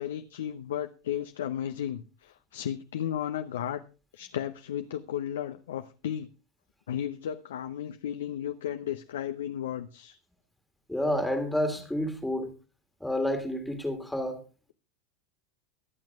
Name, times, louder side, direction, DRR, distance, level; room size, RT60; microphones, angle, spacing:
voice 1, 0.0-3.8 4.1-6.3 6.9-10.2, left 10 dB, 70° left, 9 dB, 0.6 m, -34 dB
voice 2, 10.9-12.5 13.0-14.4, left 1 dB, 5° left, 6 dB, 1.8 m, -29 dB
23.0 x 8.9 x 2.4 m, 0.33 s
figure-of-eight pair, 85°, 0 cm